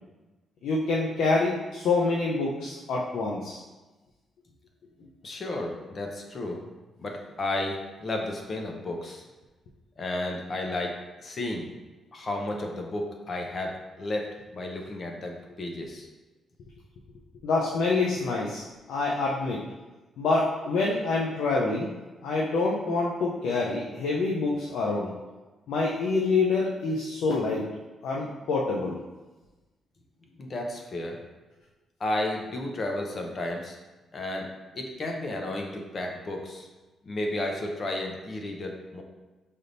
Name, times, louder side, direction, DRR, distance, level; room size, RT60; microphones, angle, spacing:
voice 1, 0.6-3.6 17.4-18.6 18.9-19.6 20.2-21.9 22.2-25.1 25.7-27.6 28.0-29.0, left 3 dB, 80° left, -3 dB, 0.6 m, -26 dB
voice 2, 5.2-6.6 7.0-9.2 10.0-10.9 11.2-11.6 12.1-13.7 14.0-14.3 14.5-16.1 30.4-31.2 32.0-33.8 34.1-34.4 34.7-36.7 37.0-39.0, left 1 dB, 45° left, 2 dB, 0.8 m, -32 dB
5.4 x 3.4 x 2.6 m, 1.2 s
cardioid pair, 90°, 0 cm